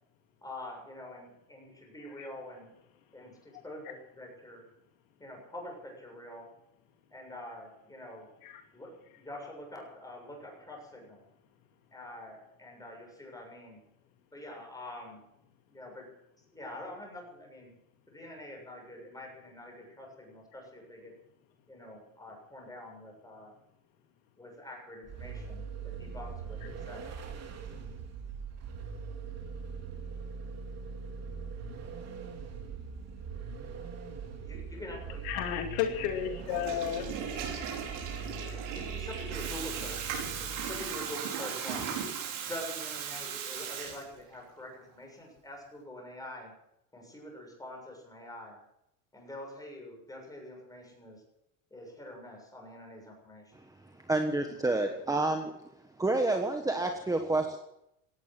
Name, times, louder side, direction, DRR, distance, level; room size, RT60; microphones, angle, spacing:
voice 1, 0.4-2.8 3.1-4.7 5.2-6.6 7.1-8.3 8.7-11.2 11.9-13.8 14.3-15.2 15.7-16.1 16.5-17.7 18.1-21.2 21.7-23.5 24.4-27.1 34.4-35.3 38.7-41.9 42.4-46.5 46.9-48.6 49.1-51.2 51.7-53.6, left 1 dB, 10° left, 1 dB, 7.0 m, -45 dB
Vehicle, 25.0-41.0, right 5 dB, 35° right, 3.1 m, -41 dB
voice 2, 35.2-37.1, left 10 dB, 80° left, 4 dB, 2.6 m, -32 dB
Water tap faucet / Toilet flush, 36.4-44.4, right 7 dB, 65° right, 5.6 m, -37 dB
voice 3, 54.0-55.5 56.0-57.6, right 2 dB, 10° right, 4 dB, 1.3 m, -29 dB
18.0 x 13.0 x 6.2 m, 0.81 s
supercardioid pair, 130°, 42 cm